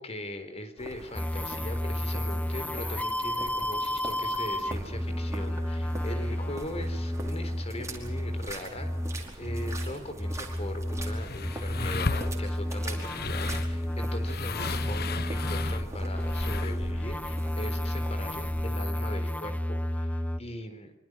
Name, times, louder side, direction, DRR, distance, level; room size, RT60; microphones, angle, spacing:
voice 1, 0.0-8.9 9.4-20.9, left 1 dB, 35° left, 9 dB, 4.2 m, -40 dB
sound 1, 0.8-18.7, right 1 dB, 15° right, 4.9 m, -43 dB
sound 2, 1.1-20.4, equal, 10° left, 0.8 m, -32 dB
sound 3, 10.6-16.9, left 4 dB, 55° left, 1.1 m, -36 dB
26.0 x 25.5 x 6.4 m, 0.82 s
head